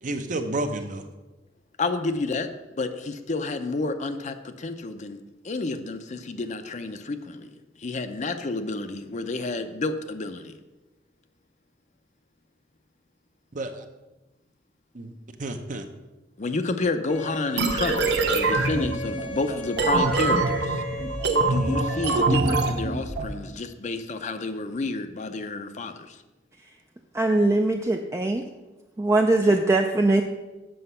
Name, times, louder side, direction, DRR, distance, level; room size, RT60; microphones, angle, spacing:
voice 1, 0.0-1.0 13.5-13.8 14.9-15.1 15.4-15.9, right 2 dB, 45° right, 7 dB, 0.7 m, -30 dB
voice 2, 1.8-2.5 2.7-10.6 16.4-20.8 21.5-26.2, left 3 dB, 40° left, 9 dB, 0.6 m, -30 dB
Bowed string instrument, 17.1-22.2, left 1 dB, 80° left, 1.6 m, -37 dB
sound 1, 17.6-23.3, right 3 dB, 70° right, 1.0 m, -24 dB
voice 3, 27.1-28.5 29.0-30.2, right 2 dB, 15° right, 3 dB, 0.4 m, -21 dB
7.8 x 6.1 x 5.5 m, 1.1 s
head